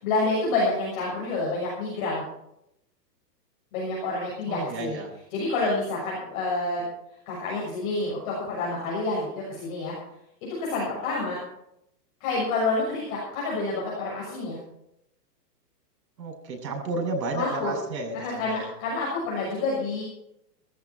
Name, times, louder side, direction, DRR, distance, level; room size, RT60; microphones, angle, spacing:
voice 1, 0.0-2.2 3.7-5.0 5.3-6.8 7.2-9.9 10.6-11.4 12.2-14.6 17.3-17.7 18.1-20.0, left 3 dB, 30° left, -5 dB, 6.8 m, -28 dB
voice 2, 4.5-5.1 16.2-18.7, right 2 dB, 90° right, 1 dB, 7.2 m, -32 dB
17.5 x 14.5 x 4.5 m, 0.80 s
hypercardioid pair, 175°, 50 cm